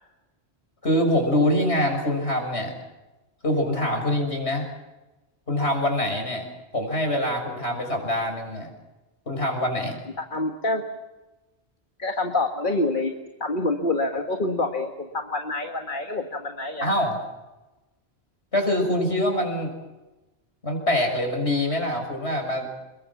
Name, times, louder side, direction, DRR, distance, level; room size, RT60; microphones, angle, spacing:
voice 1, 0.8-2.7 3.4-4.7 5.5-6.5 6.7-8.7 9.3-10.0 16.8-17.2 18.5-19.7 20.6-22.7, left 1 dB, 75° left, 3 dB, 6.8 m, -24 dB
voice 2, 10.2-10.9 12.0-13.1 13.4-16.9, left 2 dB, 50° left, 4 dB, 1.9 m, -27 dB
29.0 x 22.0 x 7.3 m, 1.1 s
omnidirectional pair, 1.1 m